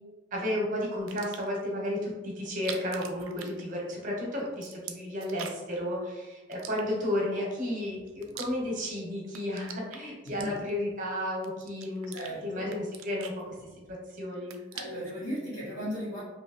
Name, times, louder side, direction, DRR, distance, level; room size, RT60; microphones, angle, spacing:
voice 1, 0.3-12.2 12.4-13.4 13.9-14.6, left 1 dB, 40° right, -2 dB, 0.8 m, -33 dB
sound 1, 1.0-1.6 2.5-4.1 4.4-5.8 6.5-7.3 7.9-8.9 9.2-10.9 11.4-12.3 12.7-14.0 14.3-15.2, right 8 dB, 85° right, 0.4 m, -44 dB
voice 2, 10.2-10.6 12.1-12.8 14.7-16.2, equal, 85° left, -10 dB, 1.0 m, -36 dB
2.8 x 2.7 x 2.7 m, 1.2 s
head